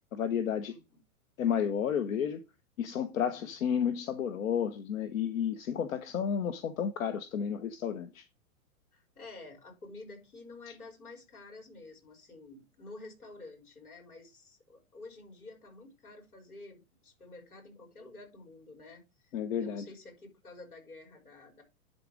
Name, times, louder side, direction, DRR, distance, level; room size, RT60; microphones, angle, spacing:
voice 1, 0.1-0.8 1.4-2.4 2.8-8.2 19.3-19.9, left 8 dB, 65° left, 1.1 m, -31 dB
voice 2, 0.7-1.0 3.2-3.5 8.9-21.6, left 2 dB, 85° left, 4.8 m, -50 dB
11.0 x 4.1 x 4.9 m
hypercardioid pair, 115°, 43 cm